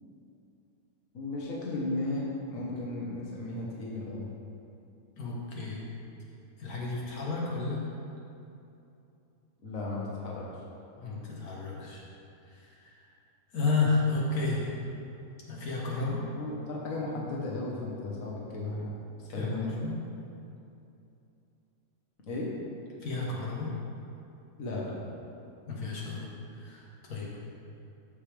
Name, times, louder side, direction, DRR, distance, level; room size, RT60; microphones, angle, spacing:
voice 1, 1.1-4.3 9.6-10.5 16.3-18.9 19.3-19.7 22.3-22.5 24.6-25.0, left 2 dB, 65° left, -4 dB, 1.7 m, -35 dB
voice 2, 5.2-5.8 6.6-7.8 11.0-12.0 12.5-13.0 13.5-14.7 15.5-16.2 19.4-19.9 23.0-23.7 25.7-27.3, left 3 dB, 85° left, -4 dB, 1.8 m, -32 dB
14.0 x 5.3 x 3.4 m, 2.7 s
omnidirectional pair, 1.5 m